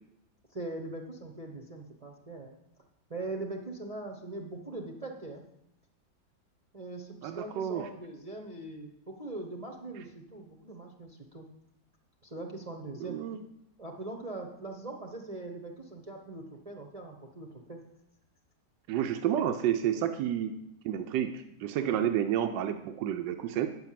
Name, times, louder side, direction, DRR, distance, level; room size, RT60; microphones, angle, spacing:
voice 1, 0.5-2.5 3.1-5.4 6.7-11.5 12.2-13.2 13.8-17.8 19.9-20.0 21.7-22.0, right 2 dB, 25° right, 2 dB, 0.9 m, -41 dB
voice 2, 7.2-7.9 13.0-13.4 18.9-20.5 20.8-23.7, right 10 dB, 85° right, 7 dB, 1.3 m, -30 dB
9.2 x 5.8 x 7.5 m, 0.82 s
omnidirectional pair, 1.9 m